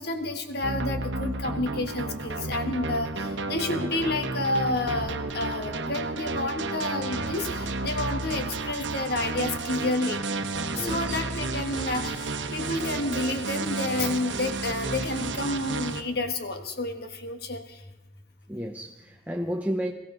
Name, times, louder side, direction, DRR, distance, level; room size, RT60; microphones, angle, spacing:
voice 1, 0.0-10.2 10.8-17.6, left 2 dB, 60° left, 1.4 m, -30 dB
sound 1, 0.6-16.0, right 3 dB, 85° right, 1.0 m, -32 dB
voice 2, 10.7-11.2 18.5-19.9, equal, 10° right, 0.5 m, -32 dB
22.0 x 15.0 x 3.9 m
head